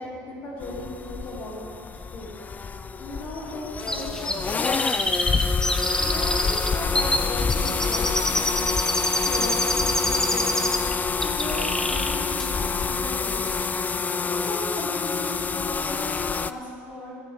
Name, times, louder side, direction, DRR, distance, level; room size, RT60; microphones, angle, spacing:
voice 1, 0.0-1.7 2.1-5.0 5.4-5.5 5.8-8.8 9.2-10.7 11.2-13.5 14.3-17.1, left 1 dB, 65° left, -8 dB, 2.8 m, -37 dB
sound 1, 0.6-16.5, left 5 dB, 25° left, 0.4 m, -27 dB
Chirp tweet, 3.9-10.9 11.2-12.1 12.4-12.5, left 1 dB, 10° left, 0.9 m, -27 dB
voice 2, 5.0-6.1 8.7-9.3 12.5-13.1 13.4-13.9, right 4 dB, 85° right, -3 dB, 2.2 m, -54 dB
15.5 x 7.4 x 3.6 m, 2.1 s
hypercardioid pair, 80°, 7 cm